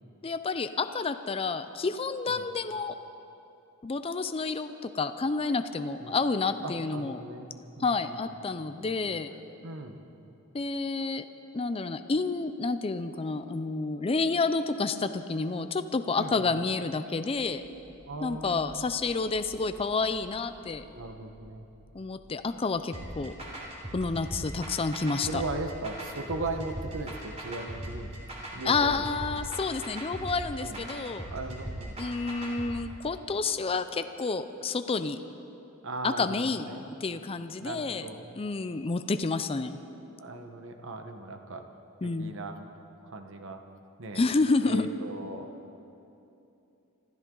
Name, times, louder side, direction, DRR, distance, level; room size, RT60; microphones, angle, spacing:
voice 1, 0.2-2.9 3.8-7.2 7.8-9.3 10.5-11.2 11.5-17.6 18.2-20.8 21.9-23.3 23.9-25.4 28.6-31.3 32.0-35.2 36.0-38.0 38.4-39.8 42.0-42.3 44.1-44.9, left 4 dB, 25° left, 10 dB, 0.5 m, -29 dB
voice 2, 6.6-7.5 7.8-8.1 8.8-9.2 9.6-10.0 16.2-16.6 18.0-18.8 20.9-21.7 25.3-28.1 28.5-29.1 30.6-30.8 31.3-32.0 35.8-36.8 37.6-38.2 40.2-41.7 42.2-42.6 43.0-43.6 44.0-44.2 44.6-45.5, right 2 dB, 60° right, 5 dB, 1.2 m, -38 dB
sound 1, 17.3-28.0, equal, 10° left, 3.5 m, -57 dB
sound 2, 22.9-32.7, right 1 dB, 30° right, 3.2 m, -39 dB
25.0 x 14.0 x 3.9 m, 2.8 s
head